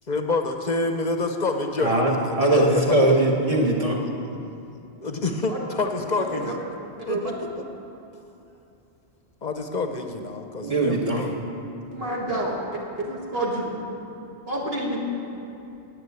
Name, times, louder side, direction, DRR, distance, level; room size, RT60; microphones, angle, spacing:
voice 1, 0.1-2.8 5.0-6.5 7.0-7.6 9.4-11.3, left 3 dB, 45° left, 5 dB, 0.7 m, -27 dB
voice 2, 1.8-2.1 2.4-4.0 10.6-11.2, right 1 dB, 30° right, -1 dB, 1.5 m, -20 dB
voice 3, 6.2-6.5 7.1-7.3 11.9-12.6 13.1-13.7 14.5-15.0, right 1 dB, 60° right, -3 dB, 1.9 m, -28 dB
9.6 x 9.3 x 7.9 m, 2.8 s
omnidirectional pair, 1.1 m